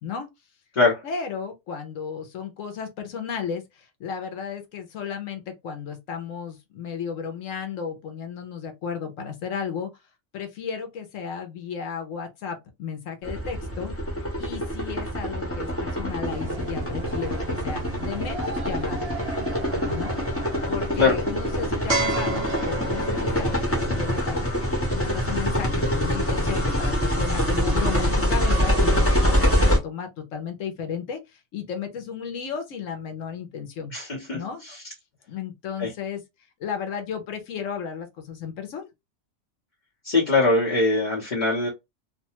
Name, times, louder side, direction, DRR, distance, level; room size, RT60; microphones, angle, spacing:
voice 1, 1.0-3.6 4.0-9.9 10.3-13.9 14.4-19.1 19.8-20.2 20.7-31.2 31.5-33.9 34.3-34.6 35.3-36.2 36.6-38.9, left 7 dB, 75° left, 1.0 m, -34 dB
sound 1, 13.2-29.8, equal, 15° left, 0.6 m, -25 dB
sound 2, 16.2-24.3, right 3 dB, 60° right, 0.3 m, -33 dB
voice 2, 33.9-34.9 35.8-35.9 40.0-41.7, left 3 dB, 40° left, 1.0 m, -22 dB
2.6 x 2.2 x 2.8 m
omnidirectional pair, 1.4 m